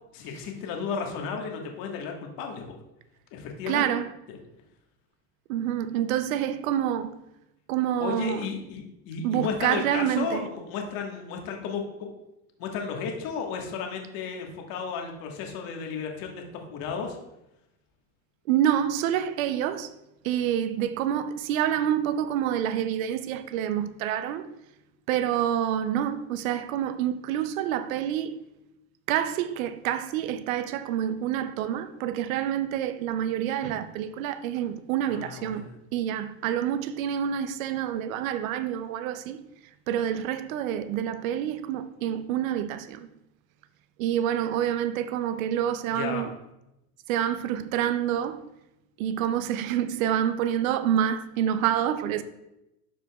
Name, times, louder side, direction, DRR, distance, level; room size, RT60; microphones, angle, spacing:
voice 1, 0.1-2.6 3.3-3.9 8.0-12.1 12.6-17.2 35.1-35.7 45.9-46.2, left 6 dB, 60° left, 1.5 m, -33 dB
voice 2, 3.7-4.1 5.5-7.1 7.7-8.5 9.2-10.5 18.5-19.9 20.2-24.5 25.1-28.4 29.1-39.4 39.9-43.1 44.0-46.4 47.1-48.4 49.0-52.2, right 10 dB, 85° right, 0.6 m, -27 dB
12.5 x 5.0 x 2.3 m
supercardioid pair, 110°, 40 cm